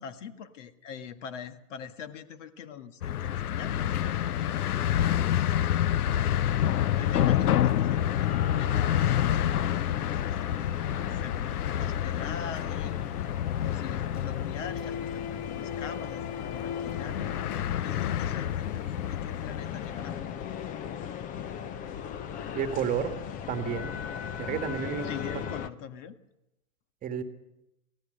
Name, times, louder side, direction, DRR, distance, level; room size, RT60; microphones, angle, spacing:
voice 1, 0.0-4.9 5.2-6.0 7.0-13.0 13.6-17.3 17.8-20.2 25.0-26.2, left 7 dB, 55° left, 9 dB, 1.8 m, -42 dB
sound 1, 3.0-20.3, left 11 dB, 80° left, 0.7 m, -28 dB
sound 2, 6.5-25.7, left 8 dB, 20° left, 0.7 m, -37 dB
voice 2, 22.5-23.2 23.5-24.0 24.4-25.1 27.0-27.2, right 7 dB, 20° right, 7 dB, 1.6 m, -31 dB
24.0 x 17.5 x 6.5 m, 0.90 s
hypercardioid pair, 130°, 44 cm